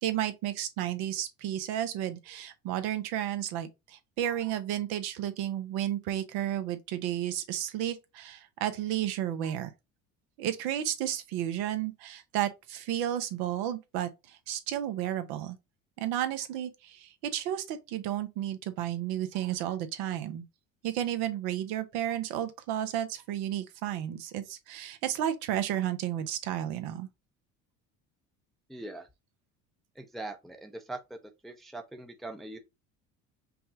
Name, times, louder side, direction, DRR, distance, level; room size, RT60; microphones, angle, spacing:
voice 1, 0.0-9.7 10.4-15.6 16.0-20.4 20.8-27.1, right 11 dB, 70° right, 0.9 m, -32 dB
voice 2, 28.7-29.1 30.0-31.2 31.4-32.6, right 2 dB, ahead, 0.6 m, -41 dB
5.3 x 2.3 x 2.7 m
supercardioid pair, 80°, 39 cm